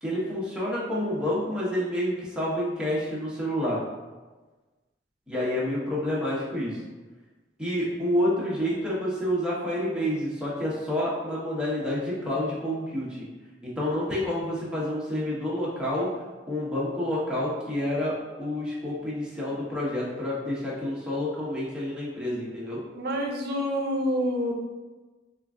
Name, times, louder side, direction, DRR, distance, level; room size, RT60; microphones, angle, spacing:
voice 1, 0.0-3.8 5.3-6.8 7.6-13.3 13.6-22.8, left 1 dB, 5° right, -7 dB, 1.1 m, -29 dB
voice 2, 22.9-24.5, equal, 60° right, 2 dB, 0.6 m, -27 dB
3.8 x 2.5 x 3.6 m, 1.2 s
head